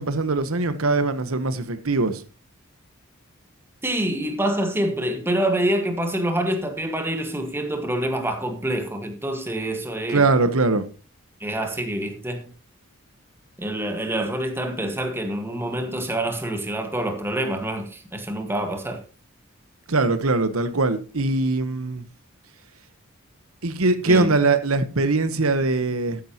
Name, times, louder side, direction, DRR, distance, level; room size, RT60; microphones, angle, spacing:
voice 1, 0.0-2.2 10.1-10.9 19.9-22.0 23.6-26.2, right 3 dB, 90° right, 1.2 m, -21 dB
voice 2, 3.8-10.3 11.4-12.5 13.6-19.0 24.1-24.3, right 1 dB, 10° right, 1.7 m, -26 dB
13.5 x 10.0 x 3.0 m
head